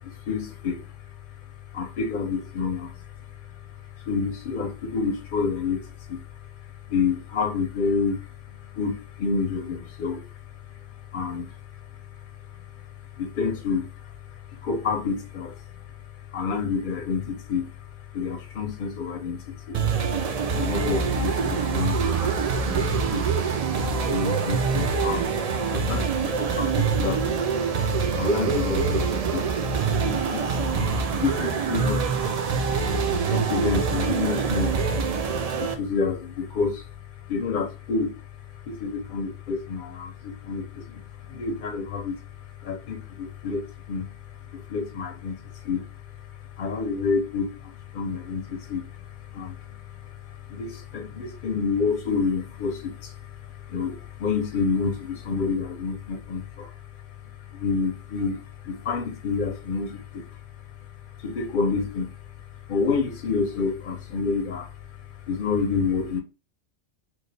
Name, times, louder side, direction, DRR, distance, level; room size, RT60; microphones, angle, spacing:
voice 1, 0.0-0.9 1.7-2.9 4.0-6.2 6.9-8.3 8.7-10.2 11.1-11.5 13.2-14.1 14.5-15.6 16.3-17.7 18.1-19.8 20.5-23.4 24.1-27.3 27.6-27.7 28.0-29.5 29.8-32.4 32.8-32.9 33.2-35.0 35.5-36.8 37.2-38.1 38.7-42.2 42.6-44.1 44.5-45.9 46.6-49.0 49.3-50.0 50.3-56.7 57.5-60.3 61.2-62.1 62.7-64.7 65.3-66.2, left 5 dB, 60° left, 0.6 m, -29 dB
sound 1, 19.7-35.7, right 5 dB, 65° right, 0.3 m, -25 dB
3.0 x 2.2 x 3.9 m
omnidirectional pair, 1.2 m